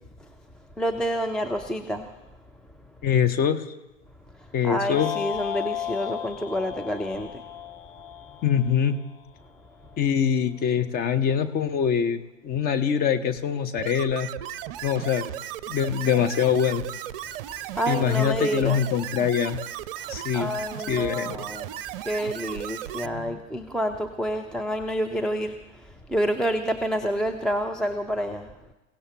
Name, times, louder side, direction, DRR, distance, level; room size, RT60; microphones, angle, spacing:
voice 1, 0.8-2.1 4.4-7.4 17.7-18.8 20.0-28.5, equal, ahead, 5 dB, 0.5 m, -29 dB
voice 2, 3.0-3.7 4.5-5.1 8.4-9.0 10.0-14.3 14.8-15.3 15.7-16.8 17.9-19.6 20.1-20.5 20.9-21.4 23.0-23.2, left 8 dB, 25° left, 10 dB, 1.0 m, -24 dB
sound 1, 4.9-9.3, left 10 dB, 50° left, 1.4 m, -34 dB
sound 2, 13.8-23.1, right 12 dB, 45° right, 0.7 m, -36 dB
29.0 x 16.5 x 2.9 m, 1.0 s
figure-of-eight pair, 95°, 39 cm